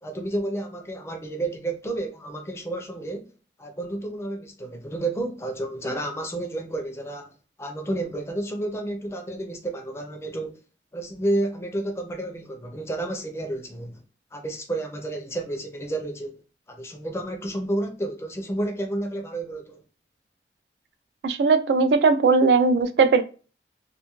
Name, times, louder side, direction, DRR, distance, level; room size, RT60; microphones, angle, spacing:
voice 1, 0.0-3.2 3.6-10.6 10.9-14.0 14.3-16.4 16.7-19.8, right 1 dB, 15° left, 0.4 m, -31 dB
voice 2, 21.2-23.2, right 4 dB, 75° right, 0.3 m, -19 dB
2.5 x 2.3 x 2.9 m
head